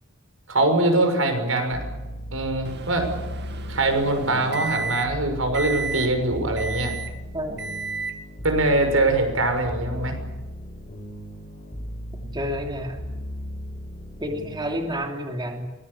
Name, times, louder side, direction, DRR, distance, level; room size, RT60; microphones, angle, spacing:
voice 1, 0.5-1.8 2.3-3.1 3.7-7.0 8.4-10.2, right 2 dB, 80° right, 6 dB, 6.2 m, -22 dB
sound 1, 1.7-15.0, equal, 35° left, 6.1 m, -36 dB
Microwave oven, 2.6-5.2 5.5-6.1 6.6-7.2 7.6-8.2, right 3 dB, 55° right, 2.2 m, -32 dB
voice 2, 7.3-7.7 12.2-13.0 14.2-15.7, equal, 25° right, 2 dB, 3.1 m, -30 dB
24.0 x 21.0 x 8.4 m, 1.1 s
head